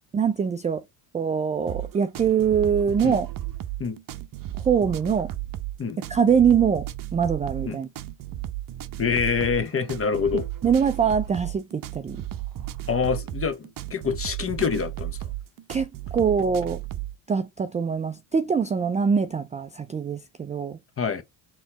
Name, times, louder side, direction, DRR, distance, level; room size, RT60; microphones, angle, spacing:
voice 1, 0.1-0.8 1.1-3.3 4.6-5.3 6.0-7.9 10.6-12.2 15.7-16.8 17.3-20.8, right 7 dB, 15° right, 0.3 m, -23 dB
sound 1, 1.7-17.1, right 14 dB, 45° right, 0.7 m, -34 dB
voice 2, 9.0-10.5 12.9-15.3 21.0-21.2, left 6 dB, 30° left, 0.9 m, -26 dB
4.1 x 3.0 x 4.0 m
supercardioid pair, 70°, 48 cm